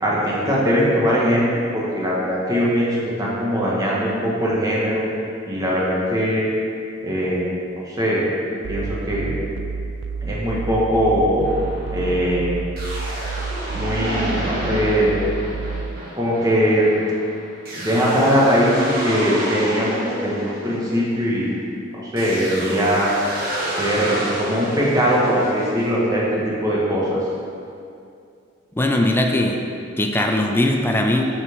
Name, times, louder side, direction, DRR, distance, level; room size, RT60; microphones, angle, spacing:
voice 1, 0.0-5.1 5.5-6.5 7.0-7.4 7.9-8.2 8.7-9.3 10.2-11.4 11.9-12.6 13.7-15.1 16.1-16.9 17.7-21.5 21.9-23.1 23.8-27.2, equal, 20° right, -6 dB, 1.4 m, -20 dB
sound 1, 8.6-16.0, right 4 dB, 70° right, 0.3 m, -30 dB
sound 2, 11.4-21.6 22.2-25.9, right 1 dB, 50° right, 1.4 m, -30 dB
voice 2, 28.8-29.6 30.0-31.2, left 1 dB, 10° left, 2 dB, 0.4 m, -19 dB
7.0 x 4.3 x 5.1 m, 2.5 s
head